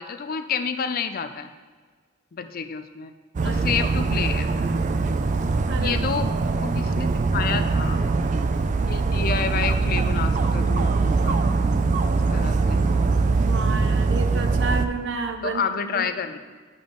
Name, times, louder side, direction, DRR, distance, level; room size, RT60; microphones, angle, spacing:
voice 1, 0.0-1.5 2.3-3.1 3.4-4.5 5.8-6.3 6.6-8.0 8.8-11.4 12.3-12.8 15.4-16.4, left 6 dB, 45° left, 9 dB, 0.4 m, -29 dB
Dog, 3.4-14.9, right 3 dB, 35° right, 0.4 m, -22 dB
voice 2, 3.4-3.8 5.7-6.0 13.4-16.1, right 4 dB, 65° right, 6 dB, 0.7 m, -31 dB
10.5 x 5.2 x 3.8 m, 1.5 s
head